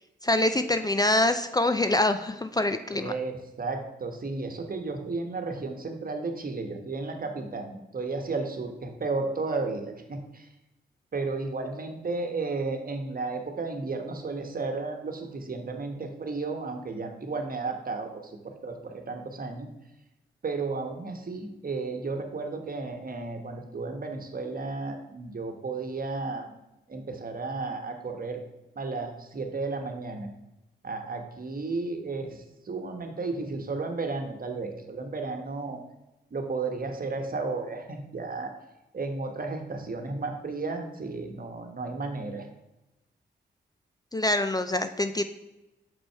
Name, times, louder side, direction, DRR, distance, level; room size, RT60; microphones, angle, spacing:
voice 1, 0.2-3.1 44.1-45.2, left 1 dB, 20° left, 9 dB, 0.5 m, -25 dB
voice 2, 2.9-10.5 11.1-19.7 20.4-26.6 26.9-28.4 28.7-30.3 30.8-35.8 36.3-38.5 38.9-42.5, right 3 dB, 45° right, 5 dB, 1.2 m, -33 dB
6.1 x 5.3 x 4.6 m, 0.97 s
supercardioid pair, 45°, 20 cm